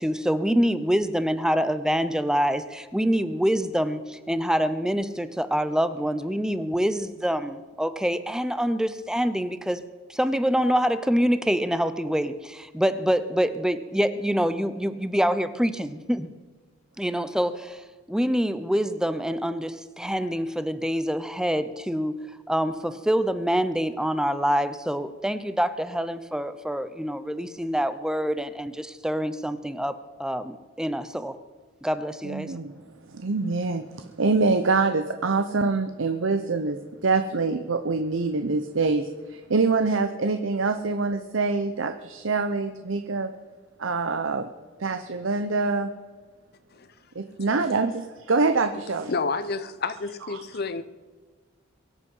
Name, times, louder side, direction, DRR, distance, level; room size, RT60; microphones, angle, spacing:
voice 1, 0.0-9.8 10.1-16.3 17.0-17.8 18.1-31.4 31.8-32.5, equal, 5° right, 12 dB, 0.7 m, -26 dB
voice 2, 32.2-32.8 33.1-43.3 43.8-44.5 44.8-45.9 47.1-49.1 50.3-50.4, right 3 dB, 70° right, 7 dB, 0.8 m, -25 dB
voice 3, 49.1-50.8, left 4 dB, 55° left, 14 dB, 0.8 m, -29 dB
23.0 x 8.2 x 5.5 m, 1.4 s
head